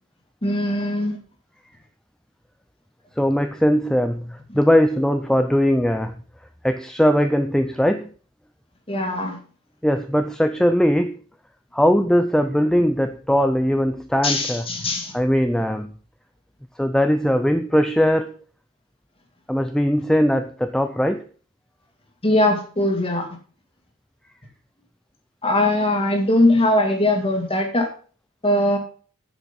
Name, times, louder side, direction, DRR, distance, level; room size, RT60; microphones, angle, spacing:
voice 1, 0.4-1.2 8.9-9.4 14.2-15.1 22.2-23.3 25.4-27.9 28.4-28.8, left 1 dB, 25° left, 3 dB, 2.1 m, -20 dB
voice 2, 3.2-6.1 6.6-8.1 9.8-11.2 11.7-14.6 15.1-15.9 16.8-18.4 19.5-21.2, equal, 5° left, 8 dB, 0.4 m, -20 dB
9.9 x 7.3 x 5.3 m, 0.42 s
head